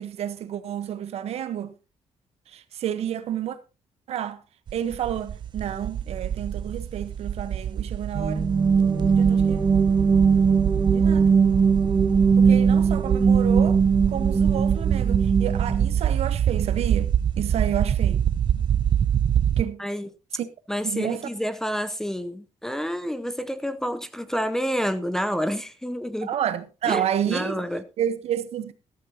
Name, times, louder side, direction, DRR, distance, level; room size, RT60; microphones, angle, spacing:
voice 1, 0.0-1.7 2.5-3.6 4.1-4.4 4.7-8.5 9.1-9.6 10.9-11.3 12.4-13.8 14.1-18.2 19.6-19.8 20.3-20.5 20.8-21.3 26.2-27.6 28.0-28.7, right 10 dB, 60° right, 1.1 m, -30 dB
sound 1, 4.7-19.6, right 9 dB, 40° right, 0.5 m, -25 dB
sound 2, 8.1-15.9, right 5 dB, 20° right, 1.9 m, -20 dB
voice 2, 20.7-26.3 26.9-27.8, equal, 5° left, 0.6 m, -29 dB
14.0 x 13.5 x 2.8 m
cardioid pair, 170°, 12 cm